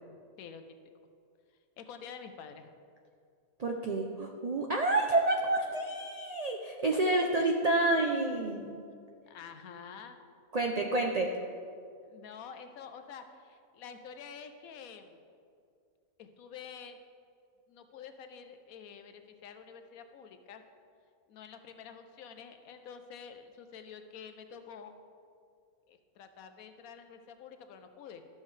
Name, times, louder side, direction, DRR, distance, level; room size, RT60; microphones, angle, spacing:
voice 1, 1.8-2.7 9.3-10.2 12.0-15.2 16.2-17.0 17.7-20.6 21.3-24.9 25.9-28.2, left 7 dB, 90° left, 8 dB, 1.1 m, -48 dB
voice 2, 3.6-8.8 10.5-11.3, right 2 dB, 70° right, 2 dB, 0.3 m, -29 dB
11.5 x 7.2 x 3.2 m, 2.3 s
omnidirectional pair, 1.4 m